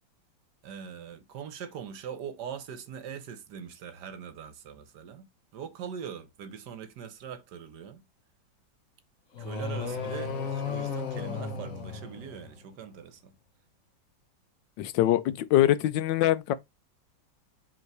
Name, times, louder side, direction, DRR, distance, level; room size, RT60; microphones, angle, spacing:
voice 1, 0.6-5.3 5.5-8.0 9.4-13.3, right 7 dB, 65° right, 1.4 m, -41 dB
sound 1, 9.3-12.7, left 5 dB, 50° left, 1.4 m, -34 dB
voice 2, 14.8-16.5, left 13 dB, 80° left, 1.3 m, -23 dB
5.4 x 3.7 x 4.7 m
omnidirectional pair, 2.1 m